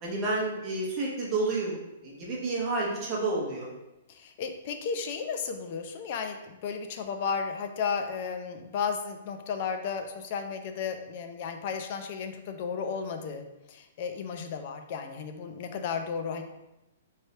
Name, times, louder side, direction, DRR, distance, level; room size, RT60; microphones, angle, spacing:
voice 1, 0.0-3.7, right 2 dB, 20° right, -4 dB, 0.9 m, -30 dB
voice 2, 4.1-16.4, left 6 dB, 35° left, 6 dB, 0.4 m, -34 dB
4.3 x 3.2 x 2.8 m, 0.95 s
hypercardioid pair, 175°, 0 cm